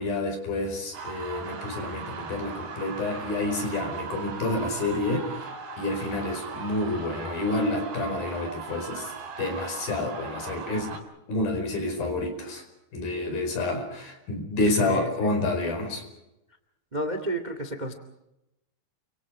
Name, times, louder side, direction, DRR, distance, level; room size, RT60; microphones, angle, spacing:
voice 1, 0.0-5.4 5.8-9.1 9.4-11.0 11.3-12.6 12.9-16.0, left 2 dB, 60° left, 5 dB, 6.7 m, -29 dB
sound 1, 0.9-11.0, right 5 dB, 75° right, 5.8 m, -38 dB
voice 2, 14.8-15.3 16.9-17.9, right 1 dB, 20° right, 8 dB, 1.0 m, -31 dB
29.5 x 26.0 x 5.0 m, 0.90 s
omnidirectional pair, 4.8 m